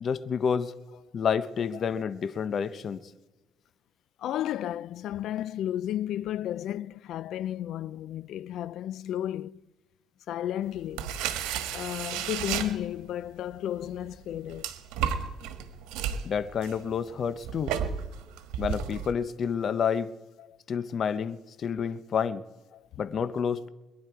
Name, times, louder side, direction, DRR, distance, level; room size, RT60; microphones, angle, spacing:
voice 1, 0.0-0.7 1.1-3.0 16.2-17.7 18.6-20.1 20.7-22.4 23.0-23.7, left 7 dB, 50° left, 0.8 m, -29 dB
voice 2, 4.2-9.6 10.3-11.1 11.7-14.7 20.5-20.6, left 12 dB, 70° left, 0.4 m, -33 dB
sound 1, 10.8-13.2 13.9-19.1, right 8 dB, 90° right, 1.5 m, -33 dB
22.5 x 11.0 x 4.7 m
cardioid pair, 95°, 0 cm